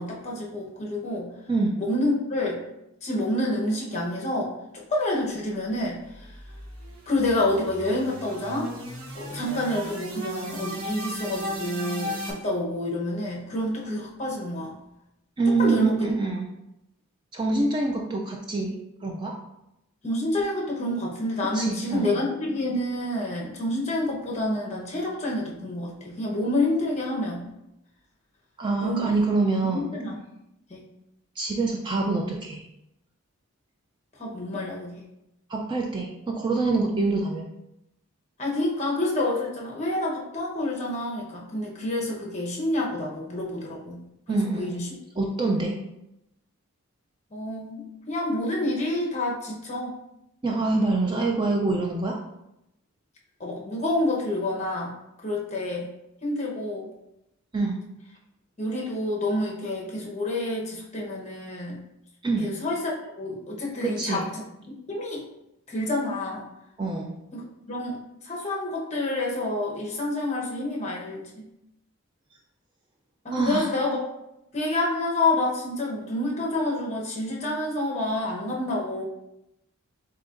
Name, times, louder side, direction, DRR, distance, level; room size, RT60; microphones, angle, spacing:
voice 1, 0.0-1.3 1.8-2.6 3.0-6.3 7.1-8.7 9.1-14.8 15.6-16.1 20.0-27.5 28.8-29.1 29.7-30.1 30.7-30.8 34.2-35.0 38.4-44.0 44.3-44.9 47.3-50.0 53.4-55.0 55.2-55.9 56.2-56.9 58.6-61.8 62.4-64.3 64.9-65.2 65.7-66.4 67.3-68.0 68.2-71.5 73.2-74.0 74.5-79.0, left 1 dB, 30° left, -3 dB, 0.9 m, -28 dB
sound 1, 5.9-12.3, equal, 70° right, 1.1 m, -36 dB
voice 2, 15.4-16.5 17.3-18.8 19.0-19.3 21.5-22.2 28.6-29.8 31.4-32.6 35.5-37.5 44.3-44.8 45.2-45.8 50.4-52.2 57.5-57.8 62.2-62.5 63.8-64.2 66.8-67.1 73.3-73.7, right 3 dB, 20° right, 0 dB, 0.3 m, -25 dB
7.5 x 2.8 x 2.5 m, 0.87 s
head